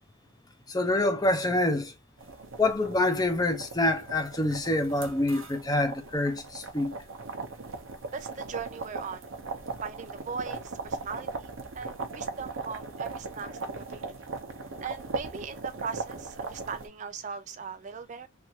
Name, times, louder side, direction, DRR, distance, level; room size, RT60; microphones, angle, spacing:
voice 1, 0.7-1.9 2.6-7.0, left 2 dB, 20° left, 0.6 m, -26 dB
sound 1, 2.2-16.9, right 3 dB, 70° right, 0.8 m, -39 dB
voice 2, 8.1-9.2 9.8-14.1 14.8-18.3, right 5 dB, 35° right, 0.3 m, -39 dB
3.4 x 2.5 x 2.7 m
head